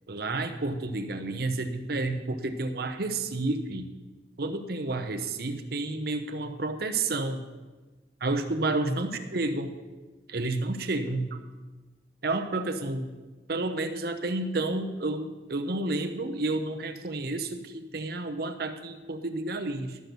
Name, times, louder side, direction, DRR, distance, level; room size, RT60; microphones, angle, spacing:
voice 1, 0.1-3.9 4.4-7.4 8.2-9.7 10.3-11.3 12.2-13.1 13.5-20.0, right 2 dB, 60° right, 7 dB, 0.9 m, -30 dB
12.5 x 6.2 x 6.7 m, 1.3 s
head